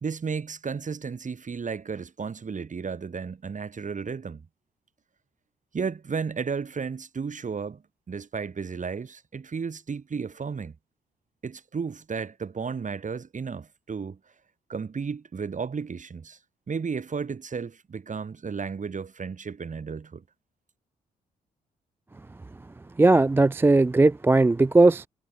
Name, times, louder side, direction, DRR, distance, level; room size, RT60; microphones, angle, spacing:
voice 1, 0.0-4.5 5.7-7.8 8.1-10.8 11.4-14.2 14.7-16.4 16.7-20.2, right 5 dB, 40° right, 2.2 m, -33 dB
voice 2, 23.0-25.1, right 2 dB, 10° right, 0.3 m, -18 dB
hypercardioid pair, 40°, 20 cm